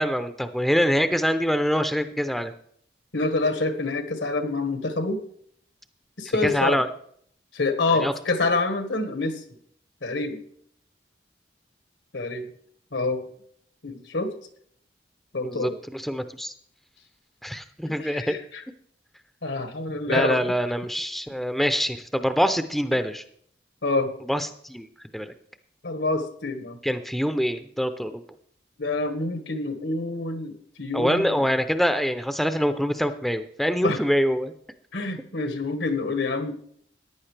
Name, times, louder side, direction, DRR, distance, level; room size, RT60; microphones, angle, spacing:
voice 1, 0.0-2.5 6.3-6.9 7.9-8.1 15.4-16.5 17.4-18.4 20.1-23.2 24.3-25.3 26.8-28.2 30.9-34.5, equal, ahead, 9 dB, 0.5 m, -25 dB
voice 2, 3.1-5.2 6.2-6.8 7.5-9.4 10.0-10.4 12.1-12.5 12.9-13.2 13.8-14.3 15.3-15.8 18.0-18.6 19.4-20.4 23.8-24.1 25.8-26.8 28.8-31.4 33.8-34.0 34.9-36.5, left 3 dB, 85° left, 6 dB, 1.5 m, -27 dB
14.5 x 10.5 x 3.3 m, 0.63 s
head